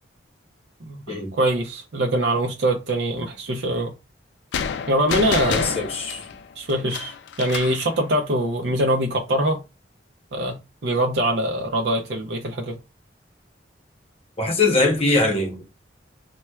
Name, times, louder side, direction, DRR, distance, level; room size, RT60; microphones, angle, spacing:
voice 1, 0.8-3.9 4.9-5.8 6.6-9.6 10.3-12.8, right 1 dB, 65° right, 0.5 m, -23 dB
sound 1, 4.5-7.9, left 6 dB, 75° left, 0.3 m, -29 dB
voice 2, 5.5-6.2 14.4-15.6, left 2 dB, 35° left, 0.8 m, -21 dB
4.2 x 2.2 x 2.2 m
head